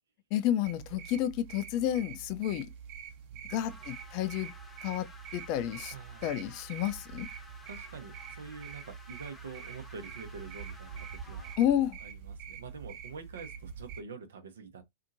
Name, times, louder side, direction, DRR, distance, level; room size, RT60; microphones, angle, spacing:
voice 1, 0.3-2.7 3.5-4.5 4.8-5.1 5.3-5.9 6.2-7.3 11.6-12.0, left 11 dB, 45° left, 0.5 m, -30 dB
sound 1, 0.6-14.0, right 7 dB, 50° right, 1.0 m, -46 dB
sound 2, 3.7-11.6, left 1 dB, 10° left, 0.9 m, -54 dB
voice 2, 5.9-6.3 7.7-11.6 12.0-14.8, right 5 dB, 75° right, 0.9 m, -46 dB
2.8 x 2.5 x 2.6 m
hypercardioid pair, 100°, 0 cm